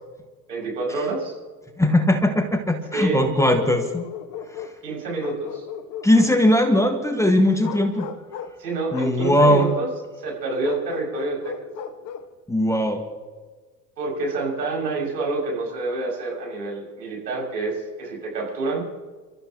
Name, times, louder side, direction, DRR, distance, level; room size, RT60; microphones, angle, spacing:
voice 1, 0.5-1.3 2.9-3.2 4.8-5.6 8.6-9.9 10.2-11.7 14.0-18.8, right 3 dB, 75° right, -1 dB, 6.3 m, -28 dB
voice 2, 1.8-4.0 6.0-8.1 8.9-9.7 12.5-13.0, left 1 dB, 5° left, 6 dB, 1.5 m, -19 dB
Bark, 3.2-4.8 5.2-6.9 7.6-8.6 8.9-9.9 10.6-12.3, left 8 dB, 40° left, 1.3 m, -35 dB
30.0 x 13.5 x 2.9 m, 1.4 s
figure-of-eight pair, 75°, 50 cm